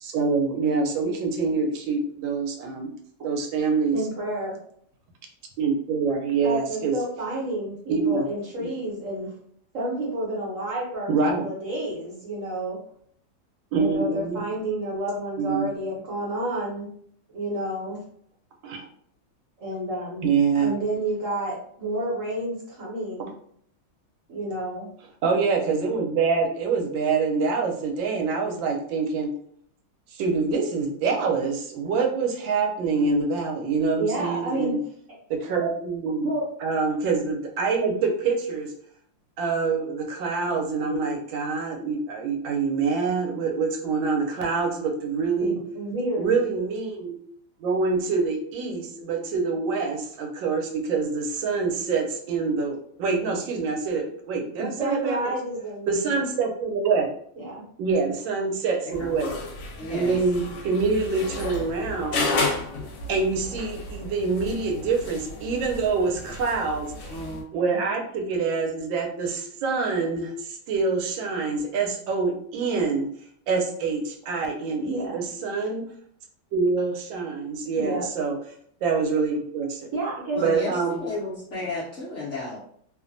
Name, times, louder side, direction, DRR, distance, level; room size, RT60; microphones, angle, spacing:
voice 1, 0.0-2.9 3.2-4.0 5.6-6.9 7.9-8.2 8.6-8.7 11.1-11.4 13.7-14.4 15.4-15.7 18.6-18.8 20.2-20.7 25.2-29.3 30.1-34.8 35.3-36.3 36.6-38.7 39.4-45.6 46.2-47.2 47.6-55.3 55.9-57.1 57.8-59.3 59.9-62.4 63.1-67.1 67.5-73.1 73.5-75.8 76.5-78.4 78.8-79.9 80.4-81.0, right 4 dB, 85° right, 2 dB, 1.3 m, -25 dB
voice 2, 3.9-4.5 6.4-9.3 9.7-12.8 13.7-16.9 17.3-18.0 19.6-20.2 20.6-23.3 24.3-24.9 34.0-34.7 36.2-36.4 45.4-46.3 54.6-56.2 57.4-57.6 74.8-75.2 77.8-78.0 79.9-80.4, right 1 dB, 55° right, -4 dB, 1.1 m, -30 dB
sound 1, 58.9-67.4, left 2 dB, 75° left, 1.2 m, -33 dB
voice 3, 59.8-60.2 67.1-67.8 80.3-82.6, left 2 dB, 60° left, -8 dB, 0.8 m, -33 dB
3.1 x 2.1 x 2.5 m, 0.63 s
omnidirectional pair, 2.0 m